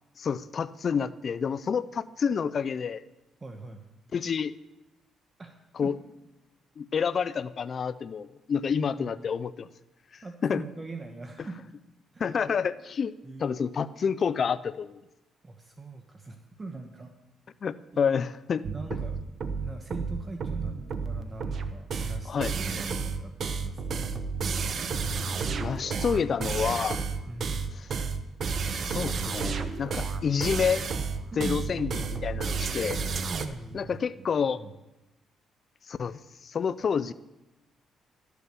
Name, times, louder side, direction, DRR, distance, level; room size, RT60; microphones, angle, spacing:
voice 1, 0.2-3.0 4.1-4.5 5.8-5.9 6.8-9.7 10.1-10.6 12.2-13.1 13.4-15.0 17.6-18.6 22.3-22.5 25.6-27.1 27.8-27.9 28.8-30.8 31.4-33.0 33.7-34.6 35.9-37.1, left 6 dB, 50° left, 14 dB, 0.4 m, -29 dB
voice 2, 3.4-3.8 5.4-5.5 5.8-5.9 9.0-9.3 10.2-11.6 12.1-12.2 13.2-13.6 15.4-17.1 17.9-18.0 18.6-19.2 19.6-24.0 27.3-27.7 31.3-32.0 33.3-34.7, right 3 dB, 30° right, 5 dB, 1.1 m, -42 dB
sound 1, 18.6-33.5, right 5 dB, 55° right, 1.0 m, -31 dB
12.5 x 8.3 x 6.8 m, 0.97 s
cardioid pair, 90°, 0 cm